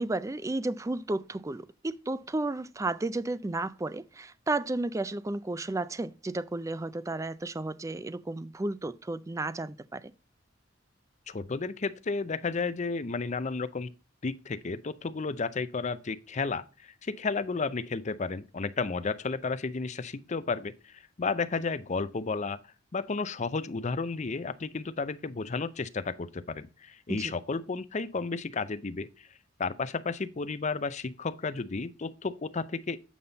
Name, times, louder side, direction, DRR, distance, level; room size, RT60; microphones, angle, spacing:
voice 1, 0.0-10.1 27.1-27.3, right 2 dB, 15° right, 0.4 m, -33 dB
voice 2, 11.3-13.9 14.2-22.6 22.9-29.3 29.6-33.0, left 4 dB, 35° left, 0.5 m, -32 dB
8.6 x 5.5 x 4.0 m
head